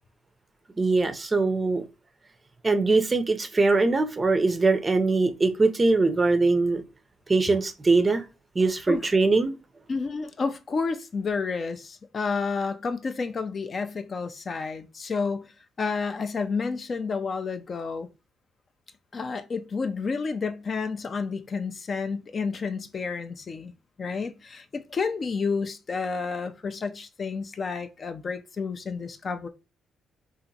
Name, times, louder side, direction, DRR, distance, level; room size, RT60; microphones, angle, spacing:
voice 1, 0.8-1.8 2.6-6.8 7.3-8.2 8.5-9.5, right 3 dB, 25° right, 0.4 m, -22 dB
voice 2, 9.9-18.1 19.1-23.7 24.0-29.5, left 4 dB, 40° left, 0.3 m, -30 dB
2.8 x 2.5 x 2.6 m
cardioid pair, 90°, 0 cm